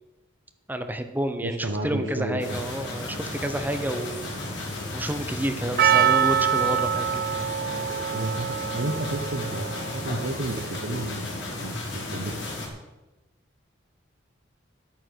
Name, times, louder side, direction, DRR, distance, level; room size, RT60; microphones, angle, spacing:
voice 1, 0.7-4.3 4.9-7.2, right 1 dB, 10° right, 7 dB, 0.8 m, -30 dB
voice 2, 1.4-2.6 8.1-12.5, right 2 dB, 85° right, 0 dB, 1.2 m, -32 dB
sound 1, 2.4-12.7, left 2 dB, 70° left, 3.0 m, -34 dB
Percussion, 5.8-11.0, right 8 dB, 50° right, 0.4 m, -25 dB
11.0 x 9.0 x 6.3 m, 1.1 s
head